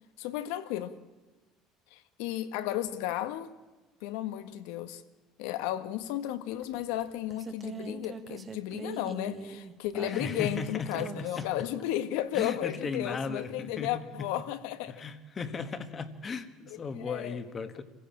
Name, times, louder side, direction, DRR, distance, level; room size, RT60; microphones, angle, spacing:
voice 1, 0.2-1.0 1.9-3.5 4.0-5.0 5.4-15.0 16.7-17.4, left 13 dB, 85° left, 1.6 m, -34 dB
sound 1, 6.6-10.6 10.9-11.6 12.9-13.0, right 4 dB, 20° right, 1.4 m, -42 dB
voice 2, 10.1-11.5 12.3-13.9 14.2-14.3 14.9-17.8, left 4 dB, 20° left, 1.4 m, -36 dB
26.5 x 16.0 x 8.8 m
cardioid pair, 170°, 0 cm